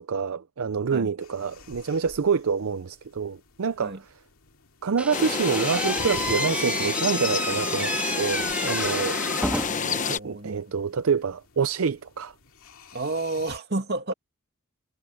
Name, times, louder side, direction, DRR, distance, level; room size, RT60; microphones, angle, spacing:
voice 1, 0.0-4.0 4.8-9.2 10.0-12.3, right 5 dB, 70° right, 0.5 m, -27 dB
sound 1, 1.2-13.6, left 3 dB, 75° left, 2.4 m, -49 dB
Slam / Squeak, 5.0-10.0, right 1 dB, 5° right, 2.3 m, -30 dB
sound 2, 5.1-10.2, left 5 dB, 35° left, 1.0 m, -29 dB
voice 2, 9.7-10.6 12.9-14.1, right 2 dB, 50° right, 2.5 m, -31 dB
head